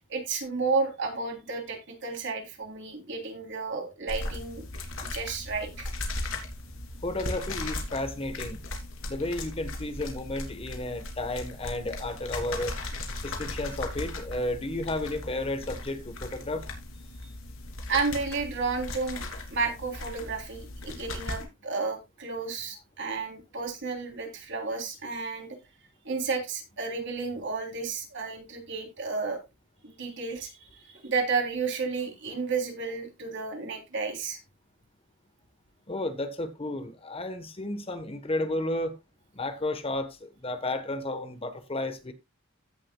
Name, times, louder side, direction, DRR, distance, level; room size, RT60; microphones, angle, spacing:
voice 1, 0.1-4.7 5.0-5.9 17.9-19.2 19.5-25.6 26.0-29.4 29.8-34.4, right 4 dB, 60° right, 3.3 m, -32 dB
sound 1, 4.1-21.4, left 2 dB, 80° left, 3.0 m, -37 dB
voice 2, 7.0-8.6 9.1-12.8 13.2-16.6 35.9-39.0 39.3-42.1, left 1 dB, 30° left, 1.1 m, -32 dB
16.0 x 7.5 x 2.3 m
head